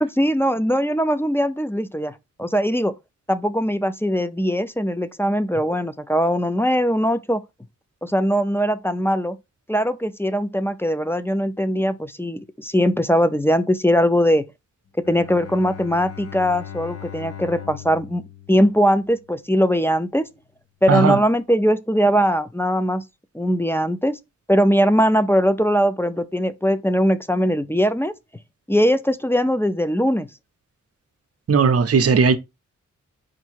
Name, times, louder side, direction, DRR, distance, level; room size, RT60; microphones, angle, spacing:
voice 1, 0.0-2.9 3.3-7.4 8.0-9.4 9.7-14.4 15.1-18.2 18.5-20.3 20.8-23.0 23.3-24.2 24.5-28.1 28.7-30.3, equal, 10° left, 0.4 m, -20 dB
Bowed string instrument, 15.0-19.4, left 9 dB, 50° left, 0.6 m, -39 dB
voice 2, 20.9-21.2 31.5-32.4, right 5 dB, 50° right, 0.6 m, -17 dB
4.5 x 2.5 x 4.5 m
cardioid pair, 70°, 31 cm